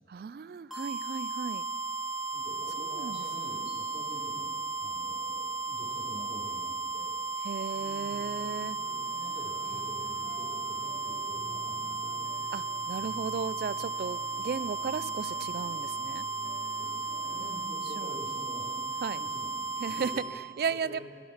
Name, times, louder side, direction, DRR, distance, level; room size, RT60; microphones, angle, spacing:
voice 1, 0.1-1.6 2.9-3.2 7.4-8.8 12.5-16.3 18.0-18.2 19.0-19.2 19.8-21.0, right 6 dB, 55° right, 19 dB, 0.3 m, -35 dB
sound 1, 0.7-20.2, right 3 dB, ahead, 2.4 m, -35 dB
voice 2, 2.3-7.1 8.6-12.2 16.7-20.2 20.7-21.0, equal, 40° right, -5 dB, 3.2 m, -47 dB
sound 2, 7.7-17.5, equal, 45° left, 2.3 m, -49 dB
16.0 x 12.5 x 5.9 m, 2.2 s
head